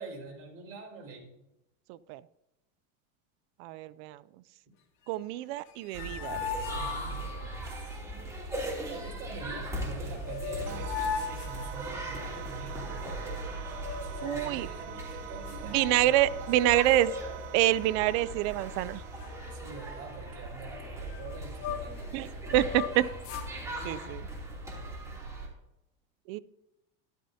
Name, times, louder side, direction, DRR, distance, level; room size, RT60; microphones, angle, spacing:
voice 1, 0.0-1.3 6.7-8.0 8.9-13.2 14.0-16.3 19.5-22.1 23.5-24.1, right 4 dB, 35° right, -2 dB, 4.8 m, -45 dB
voice 2, 1.9-2.2 3.6-4.2 5.1-6.4 14.2-14.7 15.7-17.1 17.5-19.0 22.1-22.3 22.5-23.0 23.9-24.2 26.3-26.4, right 14 dB, 55° right, 17 dB, 0.5 m, -27 dB
sound 1, 5.6-7.6 9.8-9.9 10.2-12.4 13.7-14.5 15.1-15.2 15.5-16.6 16.9-17.2 17.8-18.4 18.7-18.9 19.2-22.1 22.4-23.5, left 8 dB, 60° left, 2.0 m, -39 dB
sound 2, 5.9-25.5, right 1 dB, 10° right, 2.8 m, -39 dB
sound 3, 10.7-20.1, right 12 dB, 75° right, 1.2 m, -45 dB
13.0 x 12.5 x 2.8 m, 0.90 s
supercardioid pair, 145°, 38 cm